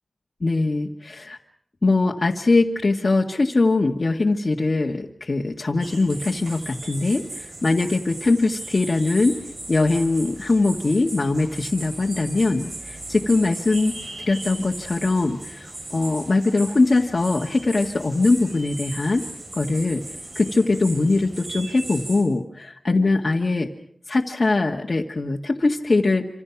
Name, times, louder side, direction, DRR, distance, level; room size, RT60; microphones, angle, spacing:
voice 1, 0.4-1.4 1.8-9.4 9.7-14.0 14.3-19.2 19.5-20.0 20.4-23.7 24.1-26.3, left 3 dB, 55° left, -1 dB, 1.9 m, -21 dB
sound 1, 5.8-22.2, right 2 dB, 60° right, 7.5 m, -37 dB
27.5 x 27.0 x 6.0 m, 0.64 s
wide cardioid pair, 65°, 0 cm